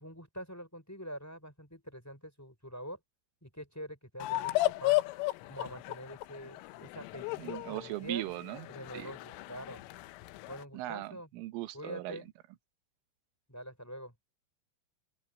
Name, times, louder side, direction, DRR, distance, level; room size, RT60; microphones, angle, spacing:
voice 1, 0.0-3.0 3.4-5.0 5.5-8.2 8.7-9.8 10.5-11.3 11.7-12.3 13.5-14.1, equal, 5° left, 4.9 m, -45 dB
sound 1, 4.2-10.6, left 18 dB, 90° left, 3.4 m, -34 dB
voice 2, 7.4-8.7 8.9-9.1 10.7-12.2, right 17 dB, 85° right, 3.6 m, -39 dB
open air
omnidirectional pair, 5.6 m